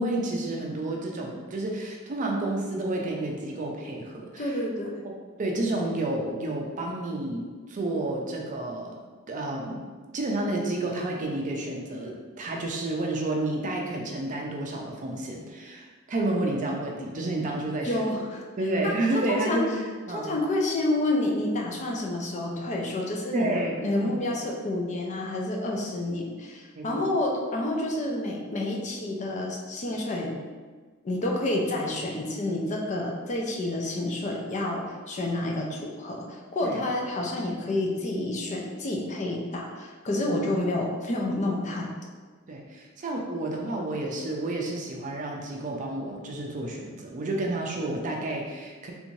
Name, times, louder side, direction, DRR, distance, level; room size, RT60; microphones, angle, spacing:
voice 1, 0.0-4.6 5.4-8.9 9.3-9.8 10.1-18.0 18.6-19.8 20.1-20.3 23.3-23.8 24.0-24.2 26.7-27.1 36.6-36.8 40.2-40.4 42.5-48.9, right 2 dB, 40° right, 0 dB, 0.4 m, -30 dB
voice 2, 4.4-5.0 17.8-18.4 18.8-19.6 20.1-30.4 31.0-41.9, left 1 dB, 35° left, -1 dB, 0.5 m, -29 dB
3.4 x 2.6 x 3.1 m, 1.4 s
head